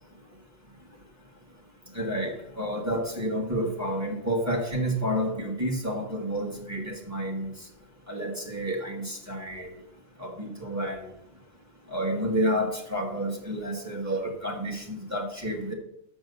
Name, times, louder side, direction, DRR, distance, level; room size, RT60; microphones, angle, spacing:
voice 1, 1.9-7.5 8.1-9.8 10.2-11.1 11.9-15.7, equal, 10° right, 1 dB, 1.4 m, -30 dB
6.2 x 6.2 x 6.6 m, 0.73 s
omnidirectional pair, 1.4 m